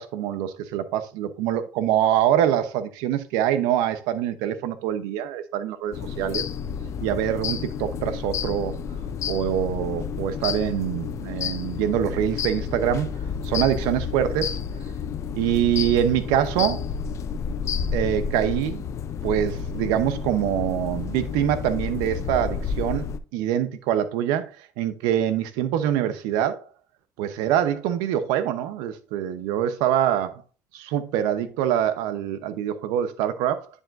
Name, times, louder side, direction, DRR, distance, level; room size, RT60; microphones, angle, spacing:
voice 1, 0.0-6.4 7.0-8.7 9.3-13.2 13.4-14.6 15.3-16.9 17.9-18.9 19.2-23.1 23.3-26.6 27.2-30.4 30.7-33.7, right 10 dB, 85° right, 0.8 m, -24 dB
sound 1, 5.9-23.2, left 6 dB, 50° left, 0.5 m, -30 dB
9.8 x 5.0 x 2.6 m
supercardioid pair, 90°, 6 cm